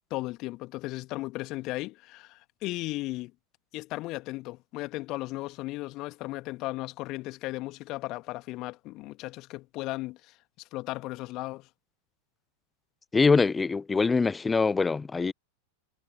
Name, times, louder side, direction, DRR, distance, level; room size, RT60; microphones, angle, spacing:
voice 1, 0.1-3.3 3.7-10.4 10.7-11.7, left 20 dB, 40° left, 2.3 m, -36 dB
voice 2, 13.1-15.3, left 4 dB, 15° left, 0.8 m, -23 dB
figure-of-eight pair, 90°, 0 cm